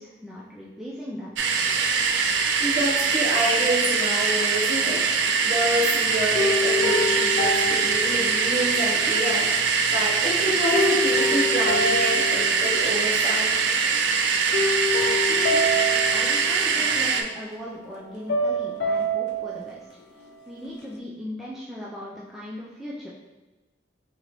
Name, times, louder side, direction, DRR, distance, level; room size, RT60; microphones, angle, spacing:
voice 1, 0.0-1.4 15.0-15.8 16.1-23.1, equal, ahead, -6 dB, 0.4 m, -38 dB
sound 1, 1.4-17.2, right 5 dB, 75° right, 0.3 m, -23 dB
voice 2, 2.6-5.0 5.4-13.5 13.8-14.4, equal, 45° right, -3 dB, 0.9 m, -28 dB
sound 2, 5.2-5.9 6.4-9.0 10.7-13.3 13.6-14.0 14.5-17.3 18.3-19.7, left 1 dB, 65° left, 0.4 m, -27 dB
3.9 x 3.0 x 2.9 m, 1.1 s
head